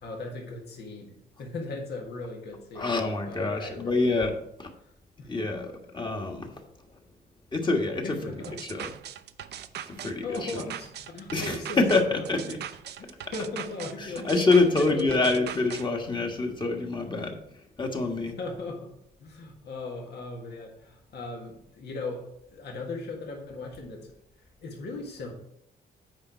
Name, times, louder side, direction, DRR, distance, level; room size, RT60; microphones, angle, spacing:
voice 1, 0.0-2.9 3.3-4.2 5.2-5.3 8.0-8.6 10.2-11.8 12.3-12.6 13.0-14.4 14.8-15.4 18.0-18.9 19.2-24.1 24.6-25.3, left 3 dB, 75° left, 0 dB, 1.8 m, -38 dB
voice 2, 2.7-4.7 5.2-6.6 6.9-7.0 7.5-8.2 8.6-8.9 9.9-10.6 11.3-12.6 14.0-17.4 17.8-18.3, left 3 dB, 25° left, 3 dB, 1.5 m, -26 dB
sound 1, 8.4-15.8, right 10 dB, 80° right, 0.5 m, -40 dB
8.8 x 5.3 x 4.6 m, 0.73 s
cardioid pair, 105°, 17 cm